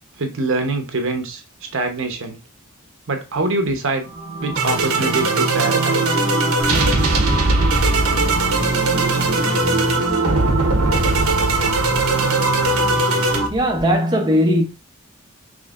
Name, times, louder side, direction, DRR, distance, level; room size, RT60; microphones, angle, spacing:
voice 1, 0.2-1.4 1.7-2.4 3.1-4.1 4.4-6.2, right 2 dB, 65° right, 0.9 m, -24 dB
sound 1, 4.1-13.5, right 2 dB, 85° right, 1.1 m, -19 dB
sound 2, 6.6-14.0, equal, 20° left, 1.3 m, -35 dB
voice 2, 13.5-14.6, equal, 20° right, 0.7 m, -18 dB
5.2 x 3.2 x 2.4 m
head